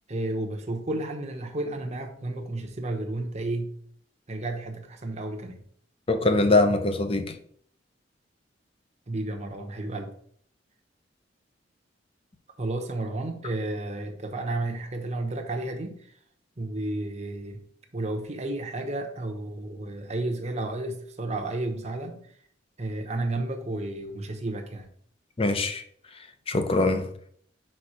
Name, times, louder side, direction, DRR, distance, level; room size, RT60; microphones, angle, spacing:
voice 1, 0.1-3.7 4.3-5.6 9.1-10.1 12.6-16.0 16.6-17.7 17.9-22.2 22.8-24.9, right 2 dB, 35° right, 0.9 m, -32 dB
voice 2, 6.1-7.4 25.4-25.8 26.5-27.1, left 2 dB, 30° left, 0.6 m, -22 dB
5.4 x 4.3 x 4.9 m
head